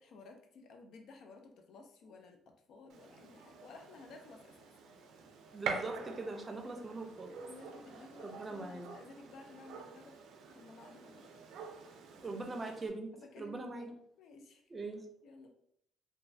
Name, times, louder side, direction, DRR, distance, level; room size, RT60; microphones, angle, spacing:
voice 1, 0.0-4.7 7.4-10.2 10.5-11.3 13.1-14.6 15.2-15.5, left 3 dB, 70° left, 4 dB, 0.4 m, -55 dB
Gunshot gunfire, 2.9-12.9, right 5 dB, 80° right, 0.4 m, -46 dB
voice 2, 5.5-7.3 8.2-8.9 12.2-13.1 13.4-13.9 14.7-15.1, right 3 dB, 30° right, 4 dB, 0.5 m, -41 dB
3.0 x 2.2 x 2.6 m, 0.69 s
cardioid pair, 80°, 0 cm